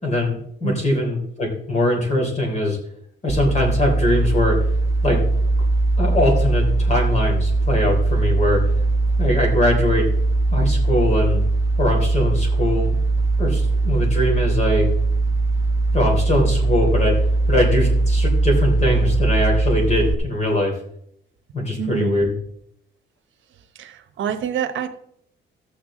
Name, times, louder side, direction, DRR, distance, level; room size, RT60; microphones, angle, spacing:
voice 1, 0.0-2.8 3.2-4.6 5.0-5.2 6.0-8.6 9.2-10.1 10.5-11.4 11.8-13.0 13.4-14.9 15.9-17.1 17.5-20.7 21.5-22.3, left 1 dB, 35° left, 0 dB, 3.5 m, -21 dB
sound 1, 3.3-20.1, right 2 dB, 15° right, 1.0 m, -20 dB
voice 2, 21.8-22.2 23.7-24.9, right 8 dB, 75° right, 8 dB, 1.1 m, -27 dB
13.0 x 8.2 x 3.8 m, 0.68 s
cardioid pair, 145°, 20 cm